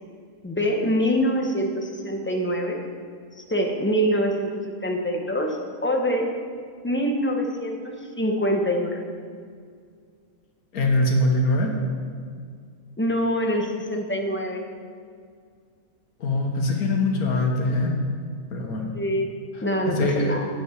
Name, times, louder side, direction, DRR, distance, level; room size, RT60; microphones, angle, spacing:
voice 1, 0.4-2.8 3.4-6.3 6.8-9.0 13.0-14.6 18.9-19.3 19.6-20.5, equal, 10° left, 2 dB, 0.9 m, -25 dB
voice 2, 10.7-11.7 16.2-17.9 18.5-18.9 20.0-20.3, left 2 dB, 90° left, 0 dB, 1.7 m, -22 dB
8.3 x 7.9 x 6.3 m, 2.1 s
omnidirectional pair, 1.5 m